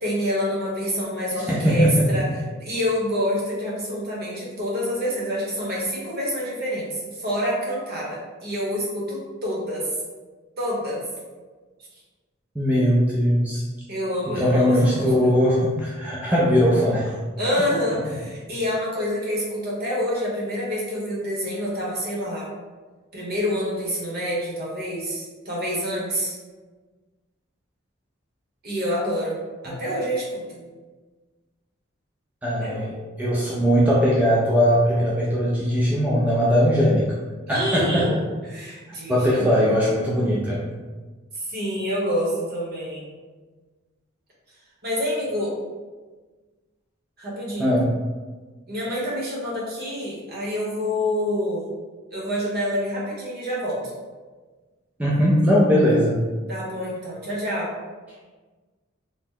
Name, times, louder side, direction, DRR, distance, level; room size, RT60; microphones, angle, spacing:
voice 1, 0.0-2.3 2.6-9.9 10.6-11.0 13.9-15.3 17.4-22.5 23.1-26.4 28.6-30.6 32.6-32.9 37.5-38.1 38.5-39.8 41.3-43.1 44.8-45.5 47.2-47.7 48.7-51.7 52.1-53.9 56.5-57.7, equal, 50° right, -5 dB, 0.9 m, -27 dB
voice 2, 1.5-2.2 12.6-13.6 14.3-17.2 29.7-29.8 32.4-37.0 37.5-38.2 39.1-40.6 47.6-47.9 55.0-56.2, equal, 5° right, -6 dB, 0.3 m, -20 dB
2.8 x 2.0 x 3.7 m, 1.3 s
head